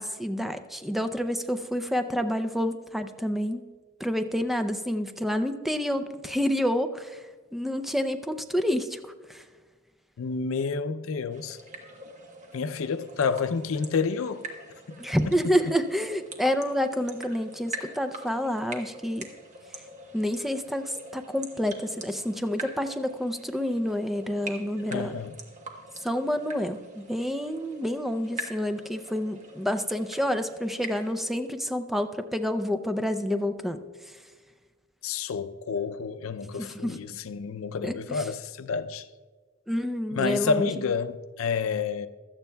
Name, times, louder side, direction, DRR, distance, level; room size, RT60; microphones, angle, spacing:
voice 1, 0.0-3.6 4.0-7.2 7.5-9.0 9.3-9.4 15.0-19.3 20.1-25.1 26.0-33.8 36.6-37.0 37.8-38.2 39.7-40.7, equal, ahead, 0.4 m, -28 dB
voice 2, 10.2-11.6 12.5-14.5 14.9-15.0 15.3-15.5 24.9-25.4 35.0-39.1 40.1-42.1, left 5 dB, 80° left, 0.5 m, -29 dB
sound 1, 11.3-31.1, right 1 dB, 35° right, 1.1 m, -44 dB
16.0 x 12.5 x 2.2 m
head